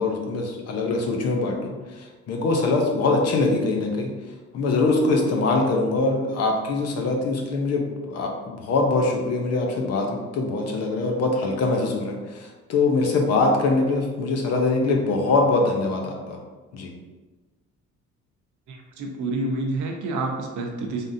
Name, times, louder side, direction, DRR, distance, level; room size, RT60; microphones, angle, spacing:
voice 1, 0.0-4.1 4.5-16.4 16.7-16.9, left 3 dB, 55° left, 1 dB, 0.7 m, -23 dB
voice 2, 18.7-21.0, right 2 dB, 75° right, 1 dB, 0.8 m, -28 dB
3.8 x 3.6 x 2.6 m, 1.2 s
cardioid pair, 170°, 30 cm